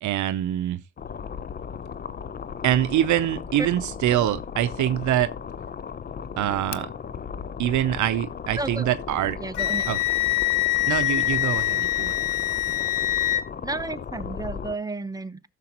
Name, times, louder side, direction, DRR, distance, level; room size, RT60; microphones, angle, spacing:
voice 1, 0.0-0.8 2.6-5.3 6.4-6.9 7.6-9.4 9.9-10.0 10.9-12.2, right 12 dB, 75° right, 0.7 m, -24 dB
sound 1, 1.0-14.8, left 7 dB, 30° left, 0.6 m, -36 dB
voice 2, 8.5-8.9 9.4-9.9 13.6-15.5, right 2 dB, 10° right, 0.9 m, -32 dB
Wind instrument woodwind instrument, 9.5-13.4, left 14 dB, 75° left, 0.8 m, -24 dB
14.5 x 6.8 x 2.9 m
cardioid pair, 90°, 30 cm